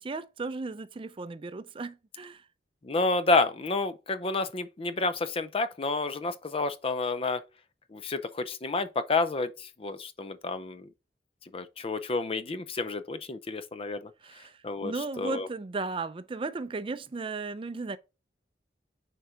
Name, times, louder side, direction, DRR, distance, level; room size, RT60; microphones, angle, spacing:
voice 1, 0.0-2.4 14.2-18.0, right 3 dB, 30° right, 0.4 m, -35 dB
voice 2, 2.8-7.4 7.9-10.9 11.5-14.1 14.6-15.5, left 3 dB, 35° left, 0.5 m, -30 dB
6.5 x 4.5 x 3.7 m
head